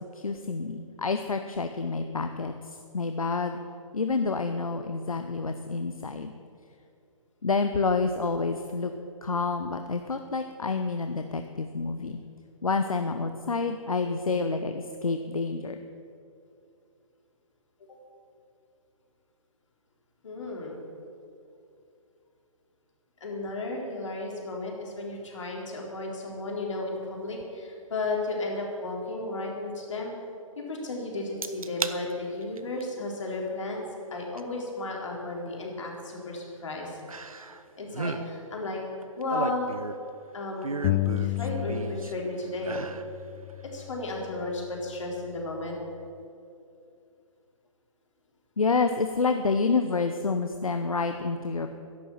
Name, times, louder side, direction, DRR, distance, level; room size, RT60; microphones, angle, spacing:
voice 1, 0.1-3.6 3.9-6.3 7.4-8.9 9.2-12.2 12.6-15.8 48.6-51.8, left 4 dB, 80° left, 7 dB, 0.9 m, -28 dB
voice 2, 20.2-20.8 23.2-30.1 30.6-33.8 34.1-37.0 37.8-38.8 39.2-39.7 40.3-40.7 41.2-42.8 43.6-45.8, left 2 dB, 60° left, -1 dB, 4.1 m, -34 dB
sound 1, 31.4-32.0 32.4-32.8 34.4-34.5 37.1-37.6 37.9-38.2 39.0-40.1 40.6-42.1 42.6-43.1 43.5-43.6, right 4 dB, 80° right, 0.9 m, -34 dB
sound 2, 40.8-42.3 42.6-44.4, left 15 dB, 20° left, 0.3 m, -31 dB
13.0 x 11.0 x 7.4 m, 2.6 s
figure-of-eight pair, 135°, 18 cm